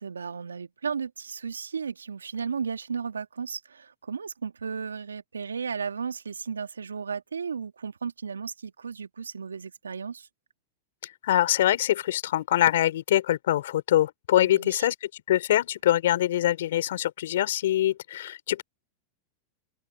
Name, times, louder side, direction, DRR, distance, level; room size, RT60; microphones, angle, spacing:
voice 1, 0.0-10.3 14.4-14.9, right 6 dB, 90° right, 2.2 m, -34 dB
voice 2, 11.2-18.6, left 13 dB, 70° left, 3.7 m, -24 dB
open air
hypercardioid pair, 95°, 0 cm